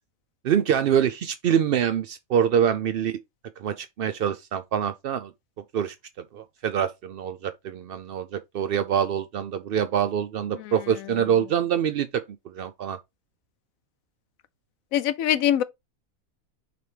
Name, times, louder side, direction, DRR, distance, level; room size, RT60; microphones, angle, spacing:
voice 1, 0.4-3.2 3.6-5.3 5.7-5.9 6.3-13.0, right 9 dB, 70° right, 0.5 m, -25 dB
voice 2, 14.9-15.6, left 11 dB, 70° left, 1.0 m, -23 dB
6.6 x 3.5 x 4.5 m
omnidirectional pair, 1.6 m